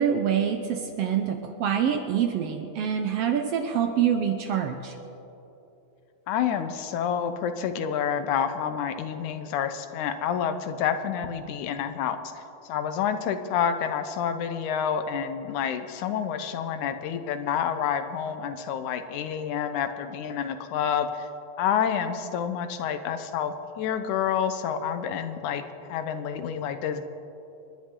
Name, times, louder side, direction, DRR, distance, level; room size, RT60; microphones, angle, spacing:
voice 1, 0.0-4.9, right 8 dB, 75° right, 6 dB, 1.5 m, -26 dB
voice 2, 6.3-12.4 12.7-21.3 21.6-25.6 25.9-27.0, left 8 dB, 85° left, 9 dB, 2.3 m, -28 dB
28.0 x 10.5 x 3.8 m, 3.0 s
omnidirectional pair, 3.4 m